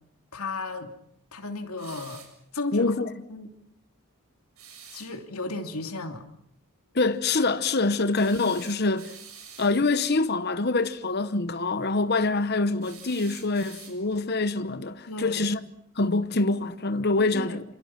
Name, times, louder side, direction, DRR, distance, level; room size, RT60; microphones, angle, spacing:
voice 1, 0.3-0.9 1.3-2.2 2.5-2.9 3.3-3.5 4.9-6.3 15.1-15.5 17.3-17.6, left 3 dB, 80° left, 3.0 m, -34 dB
sound 1, 1.8-2.4 4.6-5.1 8.1-9.8 12.8-14.2, right 7 dB, 75° right, 7.2 m, -47 dB
voice 2, 2.7-3.1 6.9-9.1 9.6-15.6 16.0-17.6, left 3 dB, 45° left, 1.0 m, -25 dB
28.0 x 27.0 x 6.0 m
head